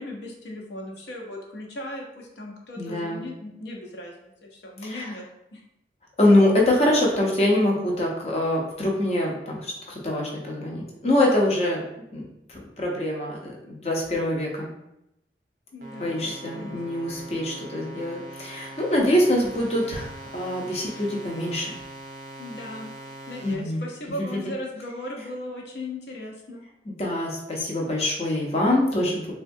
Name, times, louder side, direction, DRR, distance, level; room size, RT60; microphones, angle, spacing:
voice 1, 0.0-5.2 5.5-5.6 15.7-16.8 22.4-22.9 23.3-26.6, left 1 dB, 70° left, 0 dB, 0.7 m, -37 dB
voice 2, 2.8-3.2 4.8-5.1 6.2-11.8 12.1-14.7 16.0-21.8 23.4-23.8 24.2-24.5 26.9-29.3, left 1 dB, 35° left, -2 dB, 0.6 m, -24 dB
sound 1, 15.8-23.5, right 1 dB, 40° right, 0.4 m, -42 dB
3.6 x 2.2 x 2.6 m, 0.85 s
head